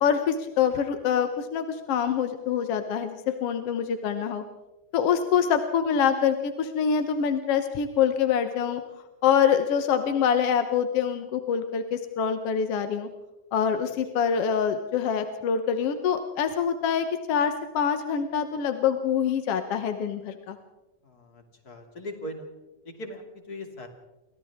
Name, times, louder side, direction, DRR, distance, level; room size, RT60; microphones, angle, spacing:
voice 1, 0.0-4.4 4.9-8.8 9.2-13.1 13.5-20.6, left 7 dB, 60° left, 7 dB, 1.8 m, -25 dB
voice 2, 21.0-22.5 22.8-23.9, left 1 dB, 30° left, 3 dB, 2.9 m, -40 dB
29.5 x 24.0 x 3.6 m, 1.0 s
omnidirectional pair, 3.5 m